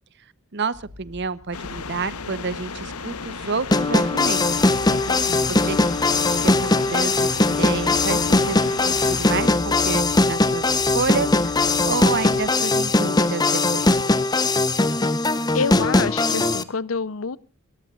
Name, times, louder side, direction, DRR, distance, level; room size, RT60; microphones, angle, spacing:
voice 1, 0.5-4.7 5.5-5.8 6.4-8.6 8.8-13.4 13.7-14.0, right 4 dB, 50° right, 0.9 m, -29 dB
sound 1, 0.7-12.5, equal, 15° right, 5.1 m, -41 dB
sound 2, 1.5-9.5, left 5 dB, 85° left, 1.1 m, -35 dB
sound 3, 3.7-16.6, left 2 dB, 20° left, 0.8 m, -20 dB
voice 2, 4.9-5.7 15.5-17.4, left 5 dB, 70° left, 0.7 m, -28 dB
28.5 x 14.5 x 2.4 m
head